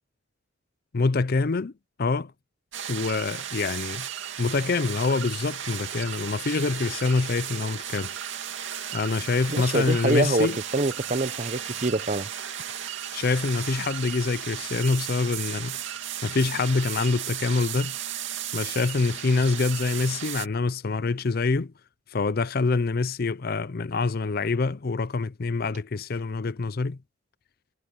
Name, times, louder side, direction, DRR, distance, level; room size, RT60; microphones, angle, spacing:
voice 1, 0.9-1.7 2.0-2.3 2.9-4.1 4.4-8.1 8.9-10.6 13.1-15.9 16.2-17.9 18.5-21.7 22.1-27.0, left 3 dB, 45° left, 0.5 m, -25 dB
sound 1, 2.7-20.5, right 10 dB, 60° right, 2.7 m, -35 dB
voice 2, 9.5-12.3, right 2 dB, 35° right, 0.9 m, -25 dB
head